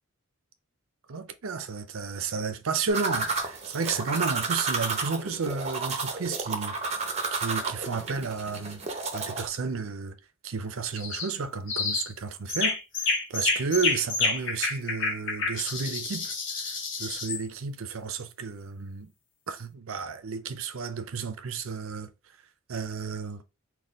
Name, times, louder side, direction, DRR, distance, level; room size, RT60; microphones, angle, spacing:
voice 1, 1.1-7.0 7.3-10.2 10.4-12.8 13.0-16.3 16.7-19.1 19.5-22.1 22.7-23.4, right 5 dB, 75° right, 0.6 m, -32 dB
sound 1, 2.9-9.5, right 4 dB, 30° right, 0.7 m, -31 dB
sound 2, 11.0-11.3 11.7-12.1 12.5-17.4, left 4 dB, 60° left, 1.1 m, -29 dB
4.1 x 2.3 x 3.5 m
head